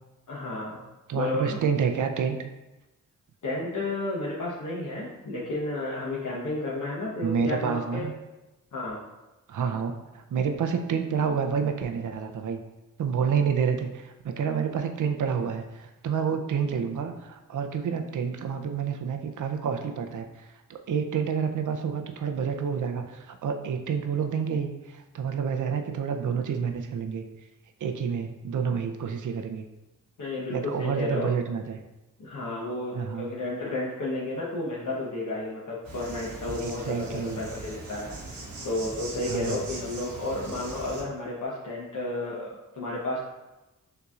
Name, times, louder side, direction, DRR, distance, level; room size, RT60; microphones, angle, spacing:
voice 1, 0.3-0.8 1.1-1.6 3.4-8.1 8.7-9.0 30.2-31.3 32.2-38.1 38.6-43.2, left 2 dB, 60° left, -6 dB, 0.9 m, -32 dB
voice 2, 1.1-2.5 7.2-8.1 9.5-12.6 13.0-27.2 27.8-29.7 30.5-31.8 32.9-33.3 36.6-37.5 39.3-39.6, right 6 dB, 65° right, 6 dB, 0.6 m, -29 dB
Insect, 35.8-41.0, right 2 dB, 80° right, 1.2 m, -40 dB
6.7 x 2.8 x 2.4 m, 1.0 s
cardioid pair, 65°, 34 cm